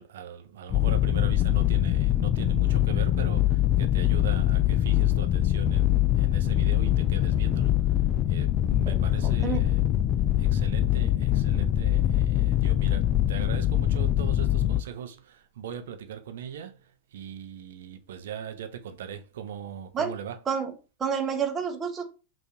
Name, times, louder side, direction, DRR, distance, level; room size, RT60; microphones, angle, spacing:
voice 1, 0.0-9.8 10.4-20.4, right 8 dB, 60° right, 0.5 m, -40 dB
sound 1, 0.7-14.8, left 13 dB, 35° left, 0.3 m, -23 dB
voice 2, 21.0-22.0, right 7 dB, 20° right, 0.8 m, -29 dB
5.5 x 2.6 x 2.9 m
figure-of-eight pair, 90°, 0 cm